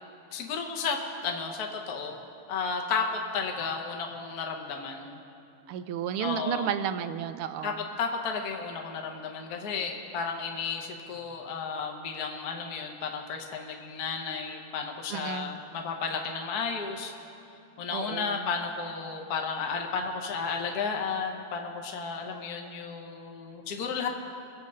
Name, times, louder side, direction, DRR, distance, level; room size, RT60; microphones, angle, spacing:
voice 1, 0.3-2.2 2.5-3.0 3.3-5.2 6.2-6.7 7.6-17.1 17.8-24.1, left 5 dB, 50° left, 2 dB, 1.5 m, -33 dB
voice 2, 5.7-7.7 15.1-15.5 17.9-18.5, right 9 dB, 85° right, 11 dB, 1.5 m, -32 dB
23.0 x 8.0 x 5.4 m, 2.9 s
omnidirectional pair, 2.3 m